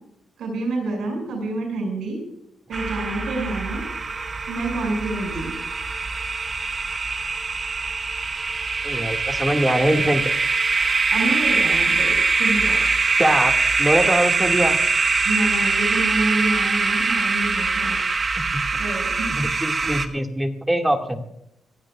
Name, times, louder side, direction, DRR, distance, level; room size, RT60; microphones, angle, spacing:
voice 1, 0.4-2.2 2.7-3.8 4.5-5.5 11.1-12.8 15.2-18.0 18.8-19.5, right 2 dB, 85° right, 1 dB, 6.3 m, -27 dB
sound 1, 2.7-20.1, right 4 dB, 40° right, 1.2 m, -23 dB
voice 2, 8.8-10.2 13.2-14.8 19.4-21.2, right 1 dB, 10° right, 4 dB, 2.1 m, -22 dB
26.0 x 16.5 x 2.4 m, 0.79 s
cardioid pair, 105°, 0 cm